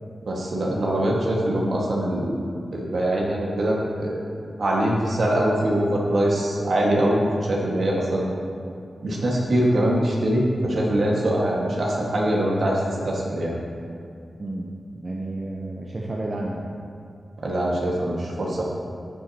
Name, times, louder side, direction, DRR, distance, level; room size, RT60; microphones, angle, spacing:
voice 1, 0.2-2.4 2.7-4.2 4.6-7.2 7.5-8.3 9.0-13.5 17.4-18.6, right 1 dB, 70° right, -3 dB, 1.7 m, -23 dB
voice 2, 14.4-14.7 15.0-16.7, right 2 dB, 45° right, -2 dB, 0.9 m, -31 dB
11.0 x 7.3 x 2.9 m, 2.4 s
cardioid pair, 50°, 0 cm